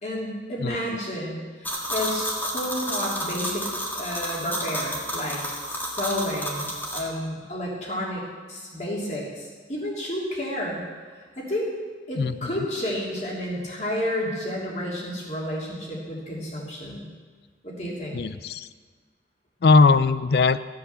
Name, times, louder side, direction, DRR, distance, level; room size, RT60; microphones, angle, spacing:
voice 1, 0.0-8.2 8.5-10.8 11.4-11.7 12.1-17.1 17.6-18.2, equal, 40° left, -3 dB, 3.1 m, -31 dB
sound 1, 1.6-7.0, equal, 10° left, 1.6 m, -30 dB
voice 2, 12.2-12.5 18.1-18.7 19.6-20.6, left 4 dB, 65° left, 14 dB, 0.4 m, -19 dB
15.0 x 7.9 x 6.9 m, 1.5 s
head